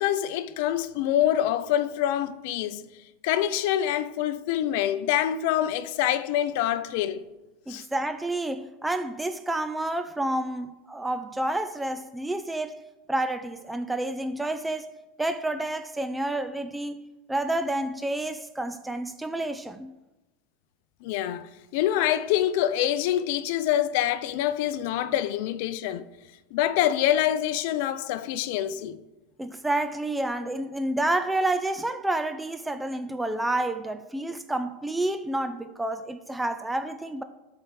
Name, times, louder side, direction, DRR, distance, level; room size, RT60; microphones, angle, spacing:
voice 1, 0.0-2.8 3.2-7.2 7.7-7.9 21.0-26.0 26.5-29.0, left 11 dB, 65° left, 0.5 m, -26 dB
voice 2, 7.7-12.8 13.1-14.9 15.2-17.0 17.3-19.9 29.4-37.2, right 1 dB, 5° right, 0.4 m, -29 dB
13.0 x 4.6 x 4.8 m
supercardioid pair, 130°, 0 cm